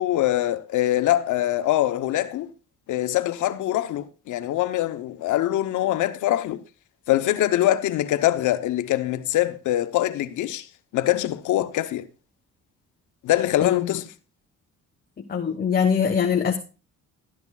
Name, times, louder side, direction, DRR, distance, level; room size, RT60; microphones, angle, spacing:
voice 1, 0.0-2.5 2.9-6.6 7.1-10.7 10.9-12.1 13.2-14.0, left 14 dB, 80° left, 0.8 m, -23 dB
voice 2, 15.3-16.6, left 7 dB, 30° left, 1.1 m, -22 dB
13.0 x 10.5 x 2.3 m
cardioid pair, 90°, 30 cm